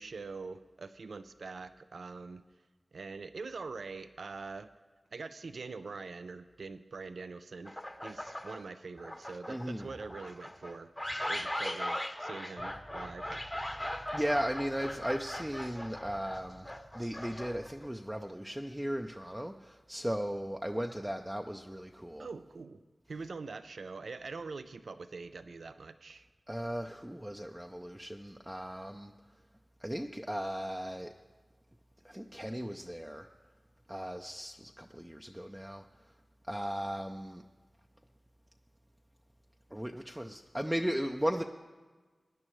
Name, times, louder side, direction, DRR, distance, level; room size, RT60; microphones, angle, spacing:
voice 1, 0.0-2.4 2.9-4.7 5.1-7.7 8.0-10.9 11.3-13.5 22.2-22.8 23.1-26.3, right 4 dB, 80° right, 11 dB, 0.4 m, -44 dB
sound 1, 7.7-8.6 9.0-17.9, left 1 dB, 10° left, 0.8 m, -39 dB
voice 2, 9.5-9.9 14.1-16.7 16.9-22.3 26.5-29.1 29.8-31.1 32.0-33.3 33.9-35.8 36.5-37.4 39.7-41.4, equal, 5° right, 3 dB, 0.5 m, -36 dB
20.5 x 9.8 x 3.1 m, 1.4 s
wide cardioid pair, 75°, 0 cm